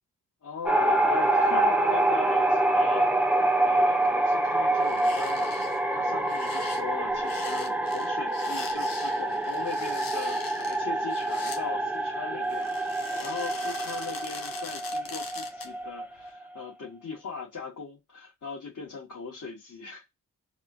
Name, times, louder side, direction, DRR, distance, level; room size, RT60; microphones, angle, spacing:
voice 1, 0.4-3.1 3.6-20.0, left 5 dB, 60° left, 2.1 m, -40 dB
sound 1, 0.6-16.6, right 1 dB, 5° right, 0.8 m, -26 dB
sound 2, 4.8-5.8 6.2-11.6 12.4-15.8 16.2-16.3, left 6 dB, 80° left, 1.0 m, -42 dB
4.1 x 2.4 x 2.7 m
cardioid pair, 70°, 34 cm